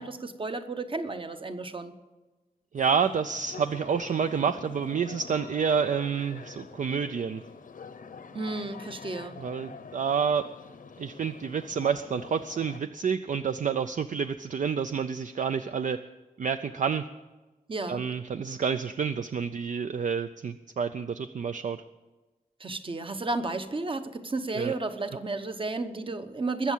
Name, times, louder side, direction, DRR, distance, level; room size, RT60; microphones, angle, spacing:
voice 1, 0.0-2.0 8.3-9.4 17.7-18.0 22.6-26.7, right 3 dB, 35° right, 9 dB, 0.9 m, -32 dB
sound 1, 2.7-12.8, left 5 dB, 65° left, 0.8 m, -45 dB
voice 2, 2.7-7.4 9.4-10.5 11.0-16.0 16.4-17.0 17.9-21.8 24.5-24.7, right 6 dB, 55° right, 10 dB, 0.4 m, -29 dB
21.0 x 7.3 x 7.4 m, 1.2 s
wide cardioid pair, 145°, 15 cm